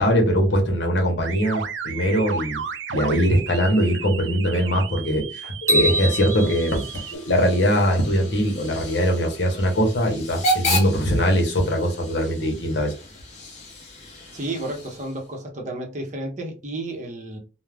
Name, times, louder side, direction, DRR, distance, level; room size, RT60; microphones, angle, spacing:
voice 1, 0.0-2.6 2.9-12.9, equal, 70° left, 0.8 m, -21 dB
sound 1, 1.2-7.2, right 6 dB, 75° right, 0.3 m, -34 dB
Hiss / Train / Alarm, 5.7-15.4, equal, 35° left, 0.8 m, -33 dB
sound 2, 5.7-7.9, right 1 dB, 15° right, 1.1 m, -26 dB
voice 2, 14.3-17.4, right 1 dB, 40° right, 0.7 m, -32 dB
2.3 x 2.1 x 3.2 m
head